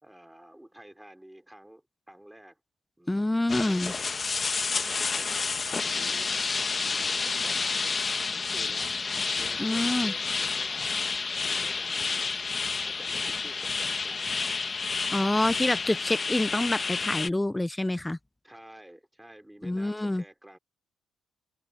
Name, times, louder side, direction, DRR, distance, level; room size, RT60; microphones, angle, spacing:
voice 1, 0.0-2.6 3.0-3.3 3.7-4.1 4.8-8.0 8.3-9.0 9.4-11.0 11.4-12.4 12.8-14.4 15.7-16.0 18.4-20.6, right 1 dB, 5° right, 4.0 m, -50 dB
voice 2, 3.1-3.9 9.6-10.1 15.1-18.2 19.6-20.2, left 1 dB, 10° left, 0.6 m, -27 dB
sound 1, 3.5-17.3, left 4 dB, 35° left, 1.3 m, -30 dB
cardioid pair, 90°, 0 cm